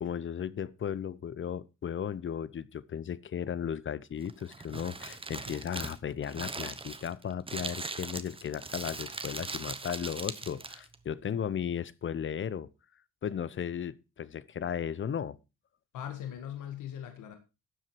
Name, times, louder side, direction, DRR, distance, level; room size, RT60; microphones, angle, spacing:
voice 1, 0.0-12.7 13.2-15.4, left 8 dB, 40° left, 0.8 m, -35 dB
Crumpling crinkling, 4.2-11.0, right 3 dB, 20° right, 1.1 m, -40 dB
voice 2, 15.9-17.4, left 10 dB, 80° left, 1.8 m, -40 dB
12.5 x 7.7 x 4.6 m
cardioid pair, 90°, 30 cm